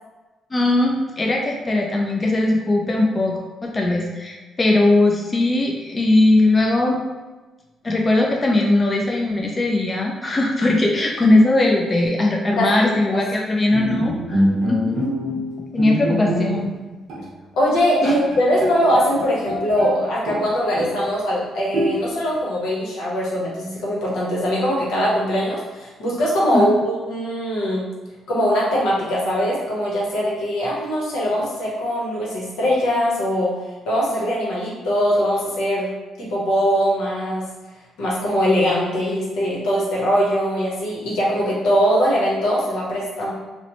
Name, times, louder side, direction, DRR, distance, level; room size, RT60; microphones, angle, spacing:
voice 1, 0.5-3.3 3.6-7.0 7.8-15.5 15.7-16.7 18.0-18.1 26.5-26.7, left 2 dB, 30° left, -1 dB, 0.4 m, -19 dB
voice 2, 12.6-13.2 17.6-27.9 28.3-33.5 33.9-35.9 36.2-37.4 38.0-43.3, equal, 85° left, -5 dB, 0.8 m, -21 dB
Bowed string instrument, 13.7-16.8 17.1-17.3 17.7-17.8 18.0-20.0 20.3-21.1 21.7-22.3, equal, 85° right, 0.7 m, -24 dB
2.8 x 2.0 x 2.9 m, 1.2 s
cardioid pair, 90°, 0 cm